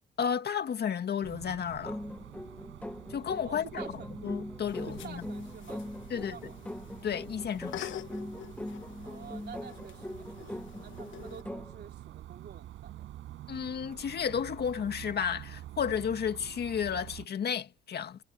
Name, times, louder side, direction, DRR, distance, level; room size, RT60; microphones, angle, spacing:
voice 1, 0.2-2.0 3.1-3.8 4.2-5.2 6.1-6.4 7.0-8.0 13.5-18.2, left 7 dB, 55° left, 2.0 m, -32 dB
sound 1, 1.2-17.3, right 13 dB, 85° right, 5.6 m, -47 dB
sound 2, 1.8-11.8, left 1 dB, 5° left, 1.1 m, -41 dB
voice 2, 3.4-4.1 4.8-6.8 9.0-13.1, right 8 dB, 55° right, 3.1 m, -49 dB
sound 3, 4.6-11.4, left 11 dB, 75° left, 1.2 m, -47 dB
cardioid pair, 90°, 20 cm